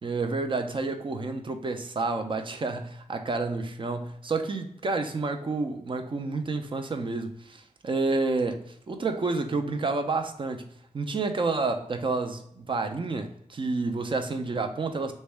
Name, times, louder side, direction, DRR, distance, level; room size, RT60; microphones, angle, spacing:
voice 1, 0.0-10.7 10.9-15.1, right 3 dB, 40° right, 6 dB, 0.4 m, -29 dB
3.4 x 2.1 x 3.3 m, 0.71 s
wide cardioid pair, 75°, 13 cm